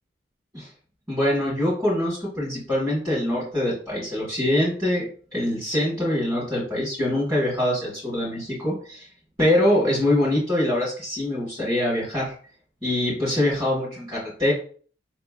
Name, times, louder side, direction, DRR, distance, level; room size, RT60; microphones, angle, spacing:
voice 1, 1.1-5.1 5.3-9.1 9.4-12.3 12.8-14.5, left 1 dB, 20° right, -9 dB, 1.5 m, -24 dB
5.2 x 3.0 x 2.4 m, 0.44 s
head